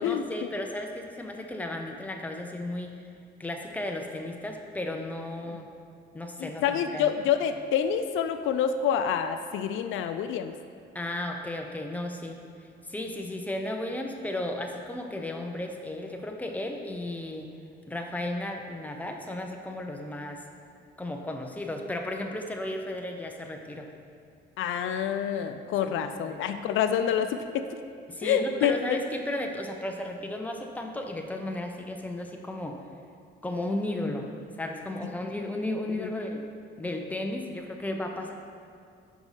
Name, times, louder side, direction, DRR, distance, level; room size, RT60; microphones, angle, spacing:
voice 1, 0.0-2.9 3.4-5.7 6.1-7.2 10.9-12.4 12.9-17.5 17.9-20.4 21.0-23.9 25.8-25.9 26.3-26.4 28.1-32.8 33.4-34.3 34.6-36.4 36.8-38.3, left 1 dB, 10° left, 2 dB, 0.7 m, -34 dB
voice 2, 6.4-10.5 24.6-27.7 28.2-29.0 36.0-36.1, left 8 dB, 80° left, 8 dB, 0.4 m, -27 dB
5.2 x 4.7 x 5.5 m, 2.4 s
cardioid pair, 90°, 20 cm